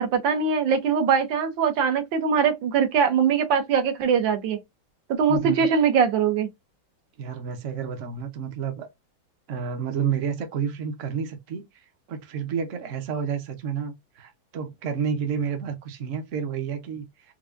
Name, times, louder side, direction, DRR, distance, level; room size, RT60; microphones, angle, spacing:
voice 1, 0.0-4.6 5.1-6.5, right 6 dB, 75° right, 1.6 m, -22 dB
voice 2, 5.3-5.7 7.2-8.9 9.5-11.6 12.1-17.3, right 7 dB, 55° right, 0.9 m, -30 dB
4.7 x 2.3 x 2.5 m
omnidirectional pair, 2.1 m